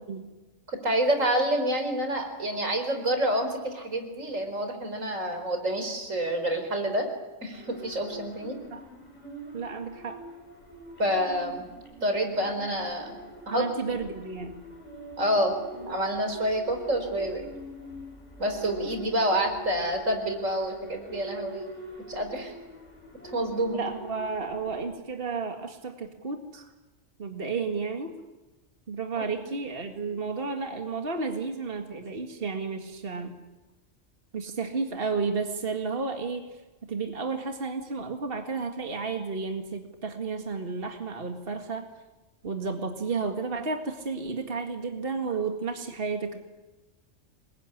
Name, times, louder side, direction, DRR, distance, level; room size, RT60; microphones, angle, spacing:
voice 1, 0.8-7.1 7.4-8.6 11.0-11.6 12.0-13.2 13.5-13.6 15.2-17.5 18.4-21.7 22.1-22.5 23.3-23.8 29.2-29.3, right 1 dB, 85° right, 6 dB, 4.9 m, -28 dB
sound 1, 7.5-24.9, equal, 35° left, 7.9 m, -44 dB
voice 2, 9.5-10.2 13.5-14.6 23.7-26.7 27.2-28.1 28.9-33.3 34.3-36.6 36.9-41.9 42.4-46.4, right 4 dB, 45° right, 4 dB, 2.2 m, -32 dB
26.5 x 22.0 x 9.9 m, 1.1 s
omnidirectional pair, 1.3 m